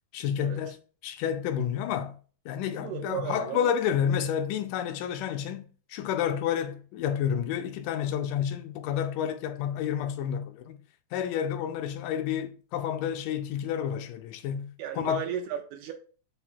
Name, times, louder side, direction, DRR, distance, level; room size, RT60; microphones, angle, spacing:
voice 1, 0.1-0.8 1.0-2.2 2.5-10.8 11.1-15.2, left 9 dB, 90° left, 2.2 m, -30 dB
voice 2, 2.7-3.8 14.8-15.9, right 9 dB, 80° right, 1.9 m, -35 dB
5.6 x 2.2 x 4.2 m
omnidirectional pair, 3.6 m